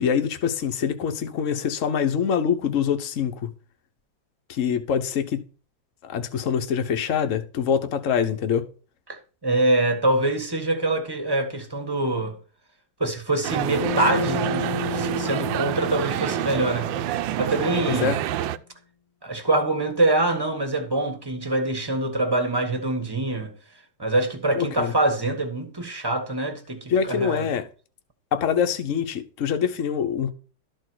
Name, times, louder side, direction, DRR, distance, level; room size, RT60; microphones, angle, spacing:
voice 1, 0.0-3.5 4.5-5.4 6.0-8.6 18.0-18.2 24.5-24.9 26.9-27.6 28.3-30.3, left 7 dB, 50° left, 1.2 m, -24 dB
voice 2, 9.4-12.4 13.0-16.9 17.4-18.2 19.2-23.5 24.0-27.5, right 2 dB, 15° right, 1.4 m, -24 dB
sound 1, 13.4-18.6, right 12 dB, 85° right, 1.3 m, -27 dB
Bass guitar, 13.8-18.2, left 5 dB, 25° left, 1.4 m, -33 dB
13.0 x 4.6 x 6.3 m
omnidirectional pair, 2.0 m